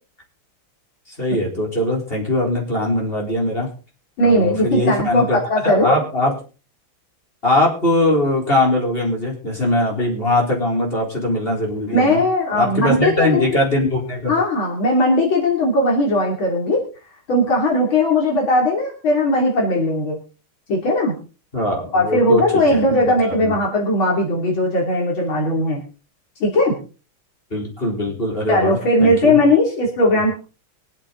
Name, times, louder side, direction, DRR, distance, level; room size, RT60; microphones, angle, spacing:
voice 1, 1.1-3.7 4.2-5.4 5.6-6.3 7.4-12.2 12.5-14.3 21.5-23.0 23.3-23.5 27.5-29.4, left 1 dB, 25° left, -1 dB, 4.4 m, -21 dB
voice 2, 4.2-6.0 11.9-13.6 14.3-16.8 17.3-20.2 20.7-21.2 21.9-25.8 26.4-26.8 28.5-30.3, left 1 dB, 70° left, -2 dB, 3.9 m, -18 dB
24.0 x 8.6 x 3.9 m, 0.36 s
omnidirectional pair, 2.3 m